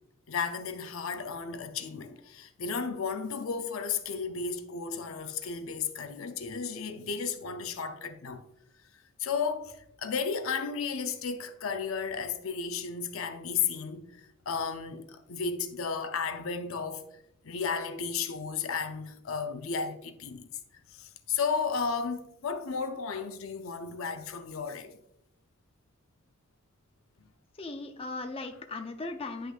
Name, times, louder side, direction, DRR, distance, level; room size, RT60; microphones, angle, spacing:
voice 1, 0.3-8.4 9.2-17.0 17.4-20.5 20.9-24.9, left 5 dB, 70° left, 0.6 m, -33 dB
voice 2, 27.6-29.5, left 3 dB, 25° left, 0.5 m, -37 dB
9.8 x 5.7 x 2.4 m
head